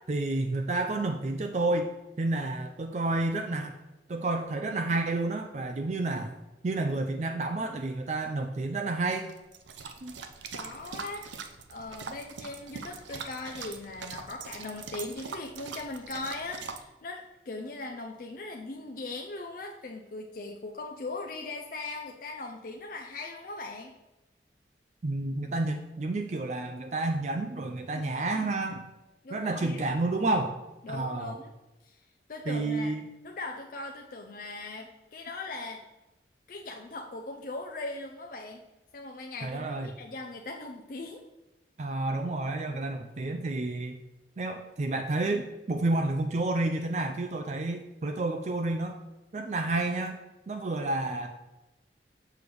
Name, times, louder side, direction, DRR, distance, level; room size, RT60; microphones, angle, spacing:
voice 1, 0.1-1.9 2.2-3.7 4.1-6.3 6.6-9.3 10.0-10.2 25.0-28.9 29.3-30.6 30.9-31.4 32.5-33.0 39.4-39.9 41.8-44.0 44.4-49.0 49.3-50.2 50.5-51.3, right 2 dB, 40° right, 5 dB, 0.4 m, -30 dB
sound 1, 9.3-16.8, right 5 dB, 85° right, 0.6 m, -42 dB
voice 2, 10.5-11.3 11.7-23.9 29.2-29.9 30.8-31.5 31.8-32.0 32.3-32.9 33.2-35.8 36.5-38.6 38.9-41.2, left 2 dB, 50° left, 2 dB, 0.5 m, -39 dB
6.8 x 3.3 x 6.1 m, 1.0 s
head